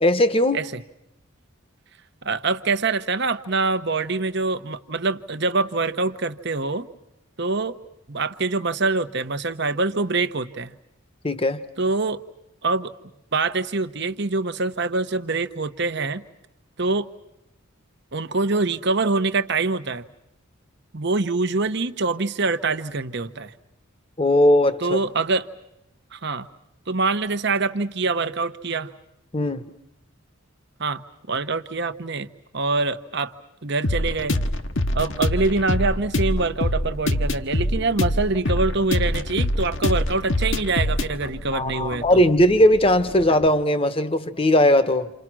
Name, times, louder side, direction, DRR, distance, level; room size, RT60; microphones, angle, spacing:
voice 1, 0.0-0.6 11.2-11.6 24.2-25.0 29.3-29.6 41.5-45.1, left 1 dB, 25° left, 11 dB, 1.1 m, -18 dB
voice 2, 2.2-6.9 7.4-7.8 8.1-10.8 11.8-12.2 12.6-12.9 13.3-16.2 16.8-17.1 18.1-20.1 20.9-23.5 24.8-25.5 26.1-26.5 26.9-28.9 30.8-32.3 32.5-33.3 33.6-34.4 34.9-42.2, right 3 dB, 55° right, 10 dB, 1.1 m, -24 dB
sound 1, 33.8-43.5, left 1 dB, 60° left, 1.2 m, -25 dB
29.0 x 27.5 x 6.2 m, 0.85 s
head